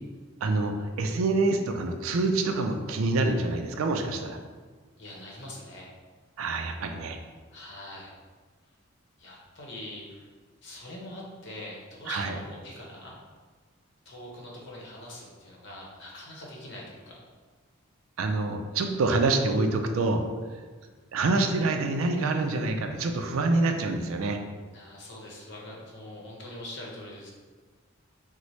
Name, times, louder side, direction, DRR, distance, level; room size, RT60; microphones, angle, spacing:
voice 1, 0.4-4.4 6.4-7.2 12.1-12.3 18.2-20.3 21.1-24.4, right 3 dB, 75° right, 5 dB, 0.4 m, -26 dB
voice 2, 5.0-5.9 7.5-8.2 9.2-10.3 10.6-13.2 14.0-17.3 24.7-27.3, left 1 dB, 60° left, -3 dB, 0.8 m, -43 dB
4.2 x 2.0 x 3.0 m, 1.4 s
head